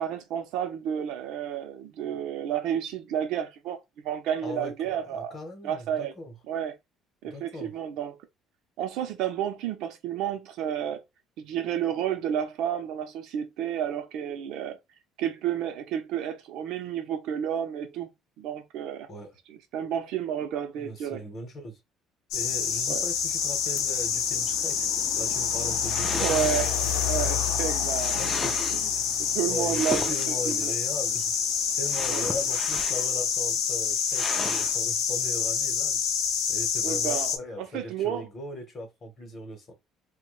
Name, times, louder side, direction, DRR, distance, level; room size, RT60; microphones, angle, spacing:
voice 1, 0.0-5.4 5.6-6.1 6.5-6.8 7.2-8.2 8.8-11.0 11.4-14.8 15.2-18.1 18.4-19.1 19.5-21.2 22.9-23.0 26.0-28.2 28.7-30.7 32.1-32.3 36.8-38.3, right 9 dB, 65° right, 0.6 m, -31 dB
voice 2, 4.4-6.3 7.2-7.8 19.1-19.4 20.7-21.8 22.3-24.8 25.2-26.6 27.2-27.3 28.2-28.8 29.5-31.3 31.7-36.0 36.5-39.7, left 1 dB, 30° left, 0.9 m, -39 dB
sound 1, 22.3-37.4, left 7 dB, 75° left, 0.5 m, -27 dB
sound 2, 25.8-27.0 27.9-28.8 29.6-30.6 31.9-33.2 33.5-33.6 34.1-34.8, left 1 dB, 10° left, 0.4 m, -35 dB
2.8 x 2.2 x 3.1 m
cardioid pair, 165°, 0 cm